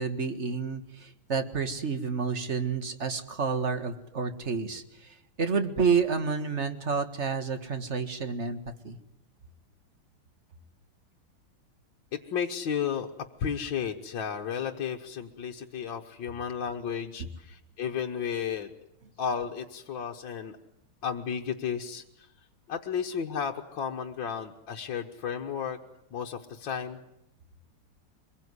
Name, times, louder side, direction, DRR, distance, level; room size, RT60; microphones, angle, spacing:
voice 1, 0.0-8.6 8.8-9.0, right 5 dB, 35° right, 9 dB, 1.8 m, -29 dB
voice 2, 12.1-13.1 13.4-18.7 19.2-20.6 21.0-22.3 22.7-25.8 26.1-27.0, left 7 dB, 60° left, 2 dB, 1.9 m, -33 dB
24.5 x 21.0 x 9.7 m, 0.81 s
omnidirectional pair, 2.4 m